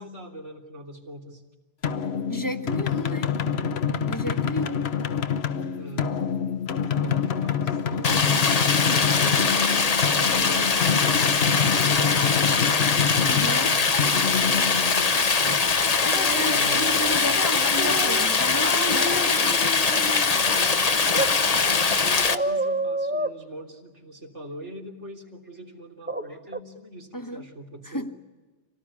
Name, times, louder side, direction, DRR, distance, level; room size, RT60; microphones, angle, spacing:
voice 1, 0.0-1.4 5.7-6.2 7.0-8.6 9.0-12.9 13.3-15.8 16.4-18.0 20.3-28.1, right 1 dB, 85° right, 3.7 m, -42 dB
sound 1, 1.8-15.4, left 7 dB, 65° left, 1.2 m, -27 dB
voice 2, 2.3-3.4 4.1-4.9 13.3-13.7 16.0-19.6 27.1-27.4 27.9-28.1, equal, 15° left, 1.2 m, -32 dB
Stream, 8.0-22.4, left 4 dB, 35° left, 0.9 m, -22 dB
sound 2, 16.1-17.2 17.8-18.3 18.7-20.6 21.1-21.3 22.3-23.3 26.1-26.3 26.5-26.6, right 2 dB, 10° right, 0.7 m, -30 dB
27.0 x 18.0 x 9.8 m
omnidirectional pair, 1.2 m